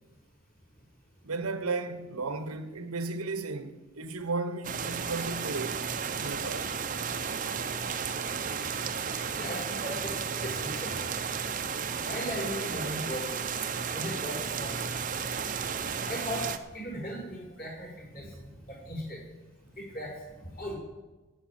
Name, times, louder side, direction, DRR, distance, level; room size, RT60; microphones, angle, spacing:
voice 1, 1.2-5.9 6.2-6.7, right 3 dB, 90° right, 1.2 m, -34 dB
sound 1, 4.6-16.6, right 6 dB, 35° right, 0.7 m, -33 dB
voice 2, 9.4-10.9 12.0-13.2 13.9-15.0 16.0-16.4 16.7-18.3 18.7-19.2 19.8-20.8, equal, 45° left, 5.5 m, -37 dB
11.5 x 8.1 x 9.3 m
head